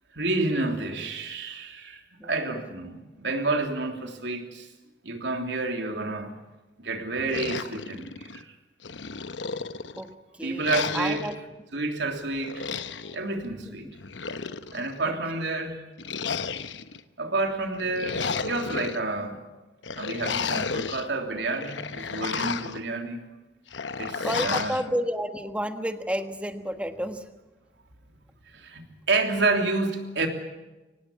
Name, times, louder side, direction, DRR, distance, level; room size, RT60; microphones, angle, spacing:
voice 1, 0.1-4.7 5.0-6.3 6.8-8.5 10.4-11.2 11.7-12.6 13.0-13.9 14.7-15.8 17.2-19.4 20.0-23.2 24.0-24.8 28.5-30.3, right 3 dB, 80° right, 4 dB, 3.2 m, -29 dB
voice 2, 2.2-2.5 10.0-11.4 13.7-13.8 15.4-15.6 24.2-27.3, equal, 5° right, 7 dB, 1.4 m, -31 dB
sound 1, 7.3-8.4 8.8-10.1 10.6-11.4 12.4-13.2 13.9-14.9 16.0-17.0 17.7-19.0 19.8-21.1 21.5-22.8 23.7-24.8, left 5 dB, 90° left, 1.0 m, -32 dB
24.5 x 19.0 x 8.6 m, 1.1 s
head